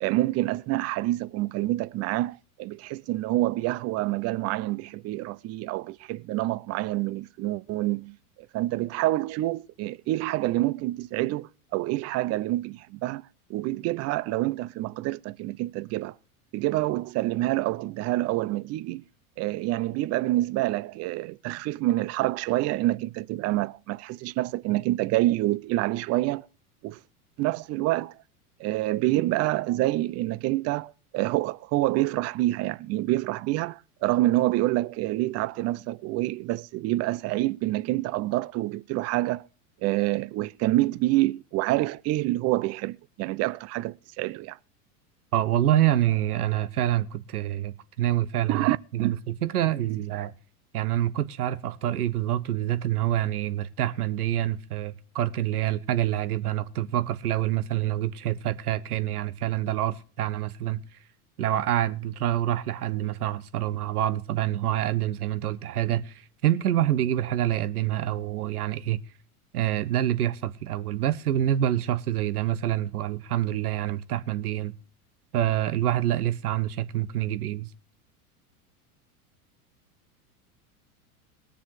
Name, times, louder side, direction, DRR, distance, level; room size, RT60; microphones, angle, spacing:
voice 1, 0.0-8.2 8.5-13.2 13.5-16.1 16.5-19.0 19.4-26.5 26.8-27.0 27.4-28.1 28.6-39.4 39.8-44.6 48.5-49.2, right 17 dB, 35° right, 0.5 m, -27 dB
voice 2, 45.3-50.3 50.7-60.8 61.4-69.0 69.5-74.7 75.3-77.7, right 12 dB, 80° right, 1.2 m, -26 dB
20.5 x 7.0 x 4.8 m
hypercardioid pair, 95°, 45 cm